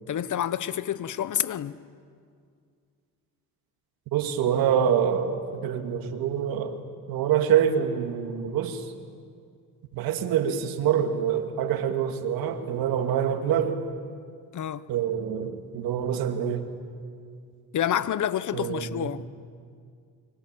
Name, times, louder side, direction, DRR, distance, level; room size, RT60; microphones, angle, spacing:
voice 1, 0.1-1.8 14.5-14.9 17.7-19.3, left 10 dB, 55° left, 1.1 m, -28 dB
voice 2, 4.1-6.8 7.1-8.9 9.9-13.8 14.9-16.7 18.5-19.1, right 8 dB, 80° right, 2.3 m, -26 dB
26.5 x 24.5 x 9.1 m
supercardioid pair, 75°, 35 cm